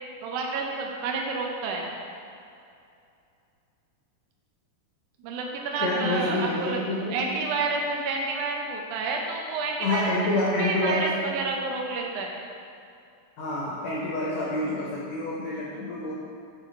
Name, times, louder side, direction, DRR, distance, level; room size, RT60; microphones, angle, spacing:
voice 1, 0.2-1.9 5.2-10.1 10.6-12.3, right 3 dB, 85° right, 0 dB, 1.7 m, -29 dB
voice 2, 5.8-7.2 9.8-11.1 13.4-16.1, left 1 dB, 75° left, -5 dB, 1.6 m, -27 dB
8.9 x 4.1 x 4.1 m, 2.5 s
omnidirectional pair, 4.3 m